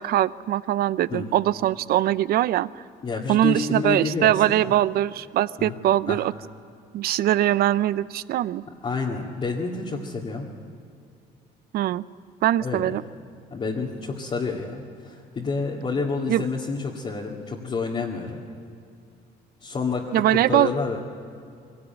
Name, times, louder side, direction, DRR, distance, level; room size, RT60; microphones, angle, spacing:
voice 1, 0.0-2.7 3.3-6.3 6.9-8.6 11.7-12.0 12.4-13.0 16.3-16.4 20.1-20.7, right 13 dB, 65° right, 18 dB, 0.6 m, -22 dB
voice 2, 3.0-4.7 5.6-5.8 6.1-6.2 8.8-10.5 12.6-13.0 13.5-18.4 19.6-21.0, left 4 dB, 35° left, -4 dB, 2.2 m, -29 dB
22.0 x 17.5 x 9.2 m, 2.5 s
cardioid pair, 110°, 17 cm